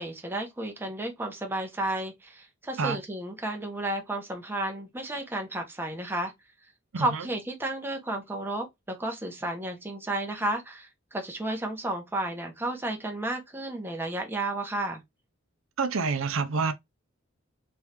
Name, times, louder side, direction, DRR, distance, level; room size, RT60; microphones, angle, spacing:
voice 1, 0.0-6.3 7.0-15.0, right 1 dB, 10° right, 1.1 m, -32 dB
voice 2, 6.9-7.2 15.8-16.7, right 4 dB, 85° right, 0.6 m, -27 dB
3.6 x 3.3 x 3.0 m
head